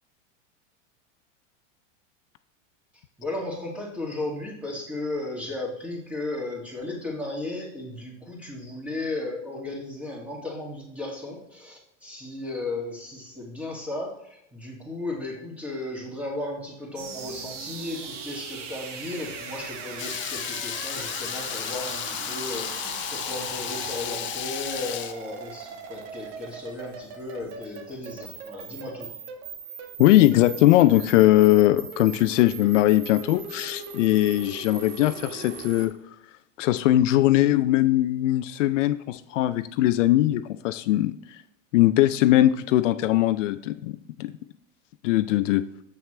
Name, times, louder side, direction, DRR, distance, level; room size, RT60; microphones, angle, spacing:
voice 1, 3.2-29.1, left 2 dB, 5° right, -2 dB, 2.2 m, -35 dB
sound 1, 17.0-35.9, right 4 dB, 70° right, 1.4 m, -39 dB
Water tap faucet / Liquid, 20.0-25.1, left 11 dB, 30° left, 0.6 m, -33 dB
voice 2, 30.0-35.9 36.6-41.1 41.7-44.3 45.0-45.6, left 15 dB, 75° left, 12 dB, 0.5 m, -20 dB
7.6 x 5.8 x 3.3 m, 0.77 s
hypercardioid pair, 105°, 38 cm